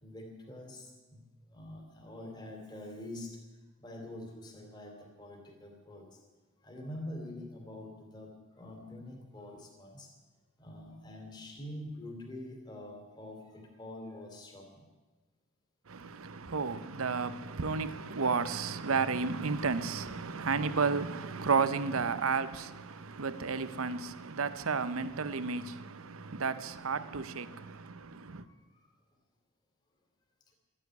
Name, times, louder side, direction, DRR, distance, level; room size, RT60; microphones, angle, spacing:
voice 1, 0.0-1.2 1.5-3.3 3.8-6.1 6.6-8.3 8.6-10.1 10.6-14.8 17.6-17.7 22.7-23.1, left 1 dB, 20° left, 2.7 m, -45 dB
voice 2, 15.9-28.5, right 5 dB, 85° right, 0.8 m, -32 dB
14.0 x 10.0 x 9.4 m
head